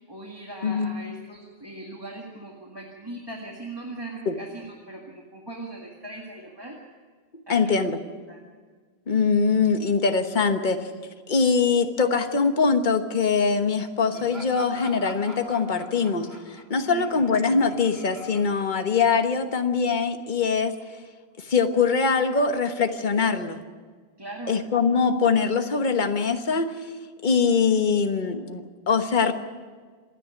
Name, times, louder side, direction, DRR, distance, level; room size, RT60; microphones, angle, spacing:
voice 1, 0.1-6.8 7.5-7.9 8.3-8.4 16.9-17.2 24.2-24.6, right 2 dB, 25° right, -1 dB, 2.0 m, -39 dB
voice 2, 7.5-8.0 9.1-10.9 11.3-20.7 21.4-23.6 24.5-26.7 27.2-29.3, left 5 dB, 50° left, 7 dB, 1.4 m, -23 dB
Laughter, 14.1-19.6, right 1 dB, 75° right, 2.9 m, -45 dB
27.0 x 10.0 x 9.8 m, 1.5 s
omnidirectional pair, 1.1 m